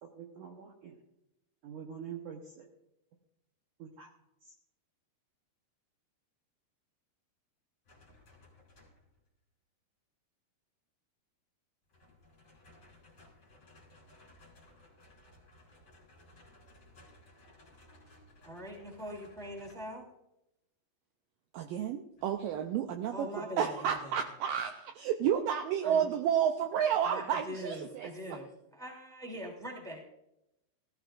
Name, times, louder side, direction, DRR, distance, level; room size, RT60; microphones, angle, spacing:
voice 1, 0.0-1.0 1.6-2.7 3.8-4.1 4.4-4.5, right 7 dB, 65° right, 1 dB, 2.0 m, -45 dB
sound 1, 7.8-9.2 11.9-20.0 22.2-22.6, left 1 dB, 30° left, 3.9 m, -59 dB
voice 2, 18.4-20.0 23.1-24.2 25.8-26.1 27.0-30.0, equal, ahead, -1 dB, 2.1 m, -42 dB
voice 3, 21.5-23.3 23.6-28.1, right 9 dB, 80° right, 5 dB, 2.0 m, -31 dB
18.5 x 14.5 x 2.5 m, 0.88 s
omnidirectional pair, 4.7 m